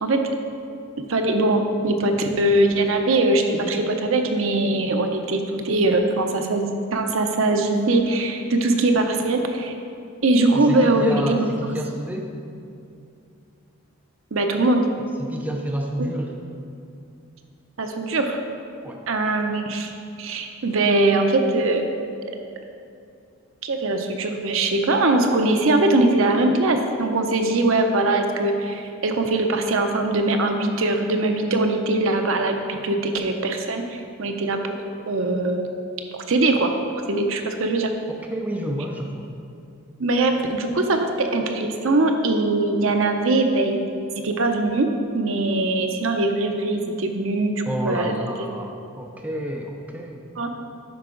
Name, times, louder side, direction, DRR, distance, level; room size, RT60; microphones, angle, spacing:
voice 1, 1.1-9.7 10.2-11.5 14.3-14.9 16.0-16.1 17.8-18.4 19.1-19.9 20.2-21.9 23.6-34.8 35.1-35.8 36.3-36.7 37.1-37.9 40.0-43.9 44.2-47.5 47.8-48.1 50.4-50.6, right 2 dB, 70° right, 4 dB, 0.7 m, -21 dB
voice 2, 10.5-12.3 15.2-16.4 18.8-19.0 38.1-39.4 47.7-50.3, equal, 5° right, 0 dB, 0.4 m, -30 dB
9.4 x 5.9 x 3.8 m, 2.5 s
head